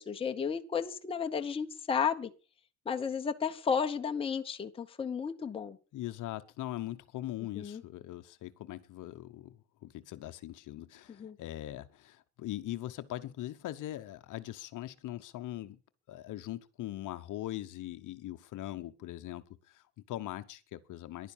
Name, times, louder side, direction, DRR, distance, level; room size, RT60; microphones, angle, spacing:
voice 1, 0.0-2.3 2.9-5.8 7.6-7.8 11.2-11.4, left 6 dB, 15° left, 0.9 m, -33 dB
voice 2, 5.9-15.8 16.1-21.3, left 14 dB, 50° left, 0.9 m, -41 dB
15.5 x 11.0 x 7.3 m
cardioid pair, 175°, 41 cm